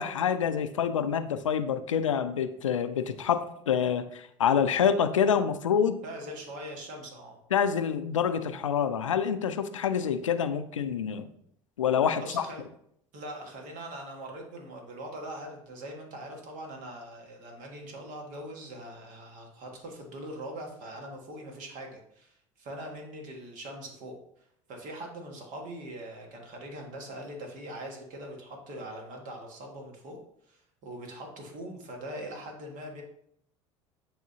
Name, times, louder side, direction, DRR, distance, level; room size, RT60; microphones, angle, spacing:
voice 1, 0.0-6.0 7.5-11.3 11.8-12.4, left 7 dB, 90° left, 10 dB, 0.5 m, -27 dB
voice 2, 6.0-7.4 12.2-12.6 13.1-30.2 30.5-33.0, right 1 dB, 55° right, 2 dB, 1.6 m, -42 dB
9.5 x 3.6 x 2.8 m, 0.71 s
hypercardioid pair, 70°, 16 cm